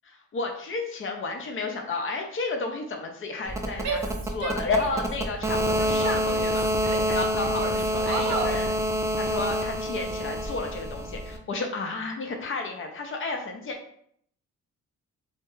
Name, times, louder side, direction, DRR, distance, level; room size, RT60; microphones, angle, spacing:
voice 1, 0.3-6.7 7.1-8.7 9.2-13.8, left 3 dB, 45° left, 3 dB, 0.5 m, -32 dB
sound 1, 3.5-11.4, equal, 10° right, 0.3 m, -27 dB
Female speech woman speaking / Yell, 3.8-5.1 5.6-7.1 7.5-8.6, right 4 dB, 65° right, 0.6 m, -33 dB
2.2 x 2.1 x 3.1 m, 0.65 s
cardioid pair, 90°, 30 cm